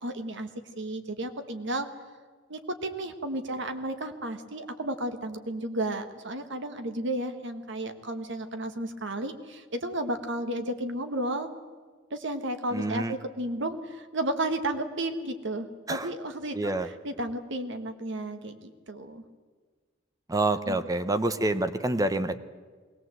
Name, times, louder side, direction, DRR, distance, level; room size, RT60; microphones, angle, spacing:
voice 1, 0.0-0.5 0.7-1.9 2.5-11.5 12.1-19.2 20.7-20.8, right 1 dB, 65° right, 8 dB, 1.6 m, -33 dB
voice 2, 12.7-13.1 15.9-16.1 16.5-16.9 20.3-22.4, right 2 dB, 20° right, 11 dB, 0.7 m, -27 dB
21.0 x 18.0 x 7.9 m, 1.5 s
head